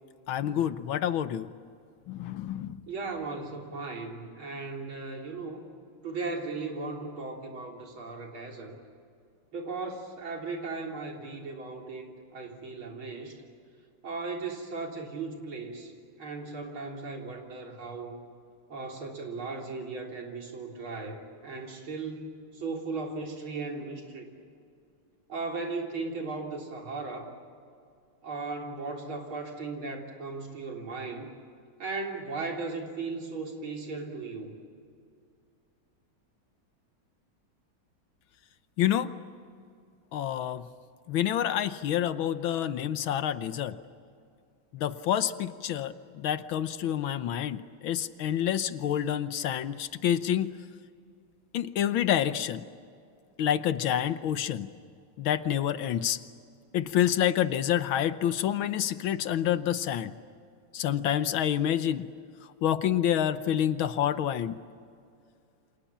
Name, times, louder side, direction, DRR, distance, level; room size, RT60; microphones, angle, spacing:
voice 1, 0.3-1.5 2.1-2.8 38.8-39.1 40.1-40.7 41.1-43.8 44.7-50.5 51.5-52.7 53.4-54.7 55.2-56.2 56.7-60.1 60.7-62.1 62.6-64.6, left 10 dB, 75° left, 12 dB, 1.7 m, -28 dB
voice 2, 2.9-5.6 6.0-8.8 9.5-13.4 14.0-15.9 16.2-18.2 18.7-24.3 25.3-27.3 28.2-31.3 31.8-34.6, right 3 dB, 70° right, 1 dB, 4.3 m, -37 dB
29.5 x 26.5 x 7.4 m, 2.3 s
omnidirectional pair, 2.3 m